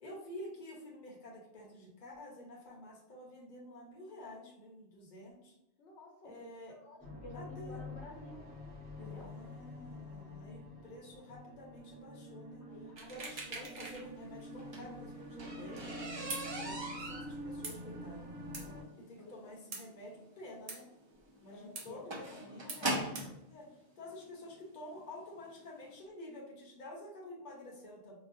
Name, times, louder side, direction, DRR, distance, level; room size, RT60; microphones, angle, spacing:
voice 1, 0.0-5.5 6.2-6.7 7.3-7.8 9.0-12.6 13.0-18.4 19.0-20.9 21.4-28.1, left 1 dB, 45° left, -2 dB, 0.9 m, -50 dB
voice 2, 5.8-8.5 9.0-9.3 12.6-13.9 18.6-18.9 19.2-19.5 21.5-22.5, left 1 dB, 80° left, -1 dB, 1.0 m, -53 dB
sound 1, 7.0-18.8, left 1 dB, 10° right, 0.8 m, -47 dB
sound 2, 13.0-14.0 14.4-14.5 16.3-16.5 17.6-17.8 18.5-18.7 19.7-19.8 20.7-20.8 21.8-21.9 22.7-22.8 23.2-23.3, right 3 dB, 55° right, 0.8 m, -42 dB
sound 3, 14.4-23.3 24.2-24.3 24.9-25.1 25.4-25.5 25.8-25.9, right 1 dB, 40° right, 0.4 m, -41 dB
4.8 x 2.2 x 2.5 m, 0.88 s
omnidirectional pair, 1.1 m